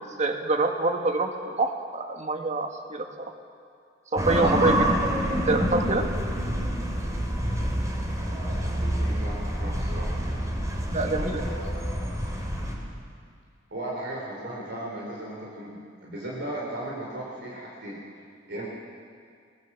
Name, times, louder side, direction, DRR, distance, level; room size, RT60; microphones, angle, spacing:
voice 1, 0.2-3.3 4.1-4.9 5.3-6.1 10.9-11.4, right 3 dB, 40° right, 4 dB, 1.8 m, -26 dB
sound 1, 4.2-12.7, equal, 20° right, 3.2 m, -27 dB
voice 2, 8.0-10.2 11.0-12.0 13.7-18.0 18.5-18.6, right 1 dB, 65° right, -4 dB, 4.0 m, -37 dB
21.5 x 18.5 x 7.5 m, 2.2 s
head